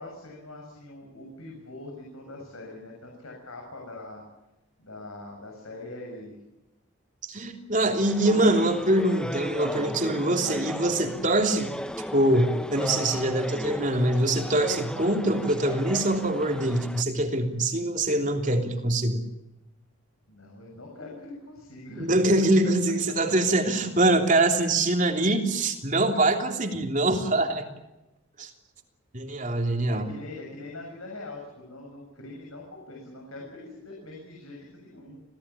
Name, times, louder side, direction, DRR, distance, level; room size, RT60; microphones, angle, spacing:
voice 1, 0.0-4.2 4.8-6.4 20.3-22.1 29.9-35.2, left 2 dB, 80° left, 0 dB, 7.3 m, -42 dB
voice 2, 7.2-11.7 12.0-19.2 22.0-27.6 28.4-28.5 29.1-30.1, right 1 dB, 35° right, 4 dB, 3.3 m, -24 dB
sound 1, 8.0-17.0, equal, 5° left, 0.8 m, -36 dB
27.5 x 17.5 x 8.6 m, 0.97 s
head